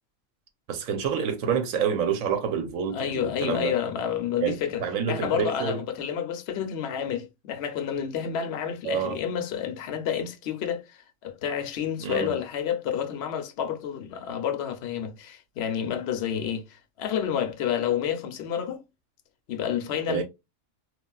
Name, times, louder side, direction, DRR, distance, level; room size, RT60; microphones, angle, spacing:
voice 1, 0.7-3.7 4.4-4.5 4.8-5.8 8.8-9.2 12.0-12.4 20.1-20.2, right 7 dB, 80° right, 1.1 m, -27 dB
voice 2, 2.9-18.8 19.5-20.2, left 8 dB, 60° left, 0.8 m, -29 dB
3.2 x 2.3 x 2.2 m
omnidirectional pair, 1.4 m